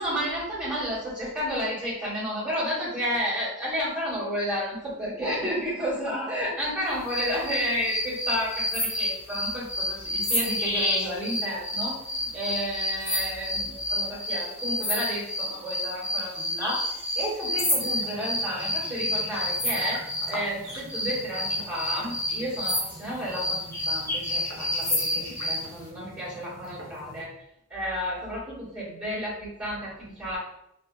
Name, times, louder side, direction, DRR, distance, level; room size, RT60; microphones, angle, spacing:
voice 1, 0.0-12.0 12.3-20.0 20.3-27.3 27.7-30.4, equal, 5° right, -12 dB, 1.3 m, -31 dB
sound 1, 7.1-20.3 20.9-25.6, left 1 dB, 15° left, 0.6 m, -29 dB
sound 2, 17.6-27.2, right 1 dB, 60° right, 0.7 m, -45 dB
2.7 x 2.4 x 2.2 m, 0.80 s
head